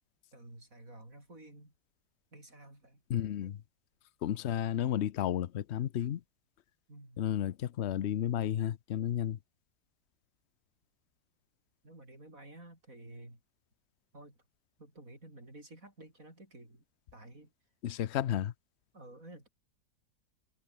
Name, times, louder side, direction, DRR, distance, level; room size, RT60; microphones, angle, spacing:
voice 1, 0.3-1.7 2.3-3.5 6.9-7.2 11.8-13.4 14.1-14.4 14.8-16.8 17.1-17.5 18.9-19.5, right 1 dB, 50° right, 8.3 m, -52 dB
voice 2, 3.1-3.6 4.2-6.2 7.2-9.4 17.8-18.5, left 10 dB, 55° left, 0.8 m, -32 dB
omnidirectional pair, 1.8 m